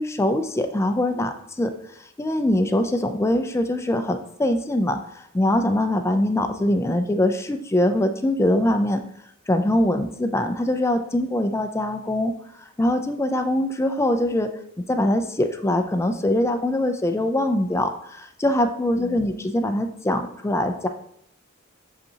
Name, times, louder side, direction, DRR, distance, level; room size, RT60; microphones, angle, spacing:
voice 1, 0.0-1.7 2.2-9.0 9.5-12.3 12.6-14.5 14.9-20.9, left 1 dB, 10° left, 7 dB, 0.4 m, -23 dB
6.6 x 5.3 x 2.8 m, 0.73 s
head